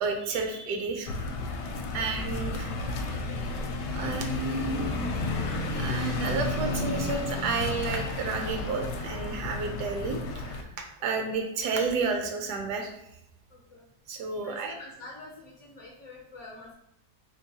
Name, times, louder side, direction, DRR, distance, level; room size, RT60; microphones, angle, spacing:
voice 1, 0.0-1.1 1.9-2.7 3.9-4.9 5.8-12.9 14.1-14.7, right 4 dB, 75° right, 4 dB, 1.1 m, -31 dB
sound 1, 1.1-10.6, left 2 dB, 75° left, 1.1 m, -32 dB
voice 2, 13.5-13.9 14.4-16.7, left 2 dB, 55° left, -2 dB, 0.9 m, -46 dB
3.8 x 3.1 x 2.7 m, 0.83 s
omnidirectional pair, 1.8 m